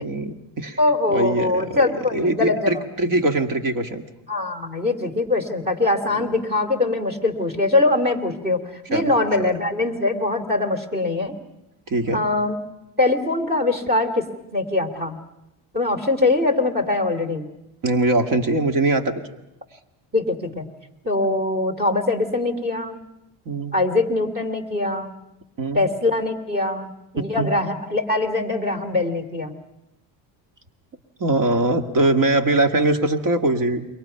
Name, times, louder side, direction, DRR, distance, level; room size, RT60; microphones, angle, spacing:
voice 1, 0.0-0.8 1.1-4.0 6.1-6.2 8.9-9.1 9.4-9.5 11.9-12.2 17.8-19.2 23.5-23.8 25.6-25.8 27.4-27.5 31.2-33.9, right 2 dB, 45° right, 7 dB, 2.1 m, -22 dB
voice 2, 0.8-2.9 4.3-8.6 8.9-11.4 12.1-12.6 13.0-14.3 14.5-15.2 15.7-17.5 20.1-20.7 21.0-23.0 23.7-25.1 25.7-29.6, left 2 dB, 20° right, 5 dB, 2.9 m, -22 dB
28.5 x 23.0 x 5.7 m, 0.90 s
cardioid pair, 110°, 45 cm